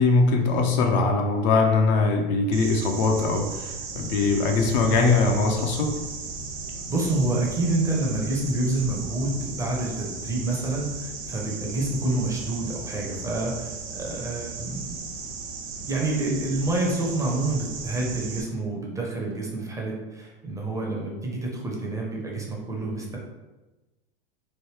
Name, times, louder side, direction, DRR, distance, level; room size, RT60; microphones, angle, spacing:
voice 1, 0.0-5.9, left 3 dB, 50° left, 2 dB, 0.5 m, -21 dB
sound 1, 2.5-18.4, right 4 dB, 50° right, 0.7 m, -36 dB
voice 2, 6.9-15.0 15.8-23.2, right 2 dB, 10° right, -2 dB, 0.6 m, -28 dB
3.2 x 2.1 x 3.3 m, 1.1 s
hypercardioid pair, 100°, 29 cm